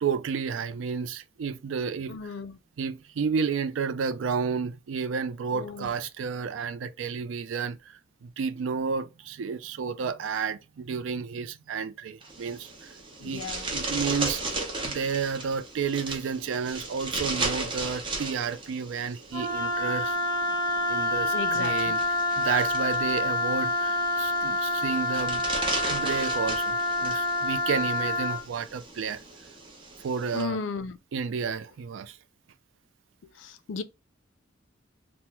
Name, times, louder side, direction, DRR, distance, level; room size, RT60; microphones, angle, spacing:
voice 1, 0.0-2.3 2.8-7.8 8.2-12.9 13.2-14.4 14.8-20.2 20.9-25.4 25.9-29.2 30.0-30.6 31.1-32.2, right 6 dB, 85° right, 0.4 m, -31 dB
voice 2, 2.1-2.6 5.5-5.9 13.2-13.6 21.3-22.0 30.3-31.0 33.4-33.8, left 5 dB, 75° left, 0.4 m, -35 dB
sound 1, 12.2-30.4, right 3 dB, 25° right, 0.7 m, -36 dB
Wind instrument woodwind instrument, 19.3-28.4, left 2 dB, 20° left, 0.7 m, -27 dB
2.9 x 2.0 x 3.4 m
head